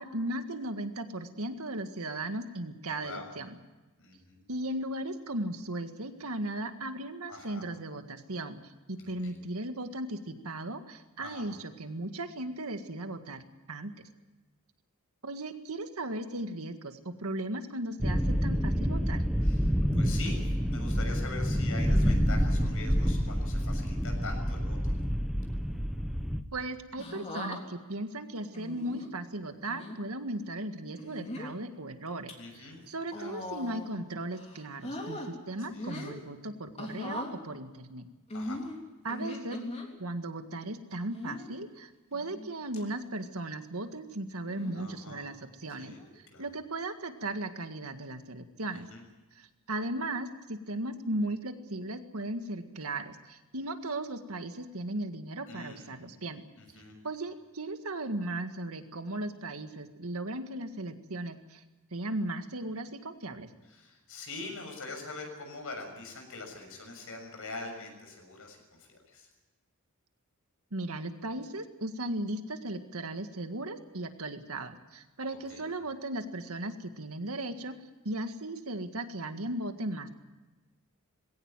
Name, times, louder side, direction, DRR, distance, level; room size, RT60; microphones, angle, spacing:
voice 1, 0.0-3.6 4.5-13.4 13.7-13.9 15.2-19.2 26.5-38.1 39.0-39.6 40.0-48.9 49.3-56.4 57.0-61.6 61.9-63.5 70.7-77.7 78.0-80.1, right 1 dB, 70° right, 7 dB, 1.9 m, -37 dB
voice 2, 3.0-3.3 4.0-4.4 7.3-7.7 9.2-9.4 11.2-11.5 19.4-24.9 32.4-32.8 33.1-33.4 35.5-36.1 38.3-38.6 44.7-45.3 45.8-46.0 46.3-46.4 48.7-49.0 55.5-55.9 56.6-57.0 63.7-69.3 75.2-75.7, left 3 dB, 65° left, 3 dB, 6.9 m, -43 dB
atomic bomb, 18.0-26.4, equal, ahead, 1.0 m, -28 dB
sound 1, 27.0-27.6 28.5-29.1 29.7-30.0 30.9-31.5 32.1-32.3 33.1-34.0 34.3-35.3 35.7-36.2 36.8-37.3 38.3-39.9 41.1-41.5 42.1-42.5 42.7-42.8 44.4-44.8 45.9-46.2, left 1 dB, 30° left, 3.4 m, -40 dB
21.0 x 17.0 x 9.1 m, 1.2 s
head